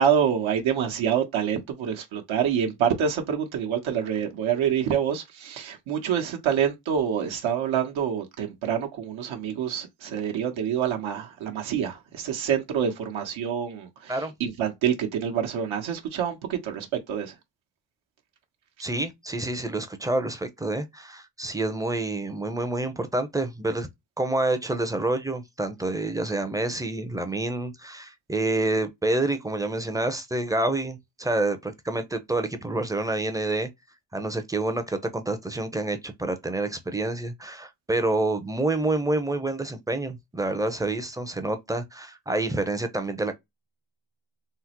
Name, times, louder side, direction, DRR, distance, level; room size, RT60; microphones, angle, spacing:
voice 1, 0.0-17.3, right 8 dB, 65° right, 1.0 m, -27 dB
voice 2, 18.8-23.9 24.2-33.7 34.1-43.4, right 2 dB, 5° right, 0.5 m, -28 dB
3.7 x 2.0 x 2.9 m
cardioid pair, 80°, 49 cm